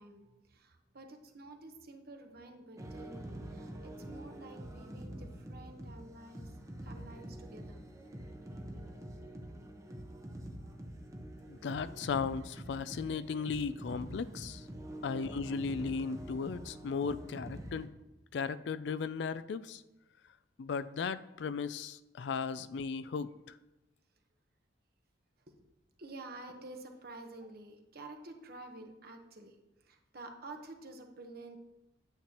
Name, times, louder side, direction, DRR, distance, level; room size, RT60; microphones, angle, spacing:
voice 1, 0.0-6.5 6.8-7.9 25.5-25.6 26.0-29.6 29.8-31.6, right 2 dB, 55° right, 4 dB, 1.1 m, -50 dB
sound 1, 2.8-17.9, right 1 dB, 15° right, 0.8 m, -46 dB
voice 2, 11.5-14.6 15.0-17.9 18.3-19.8 20.6-23.3, left 5 dB, 65° left, 15 dB, 0.4 m, -36 dB
8.9 x 8.7 x 2.9 m, 0.98 s
head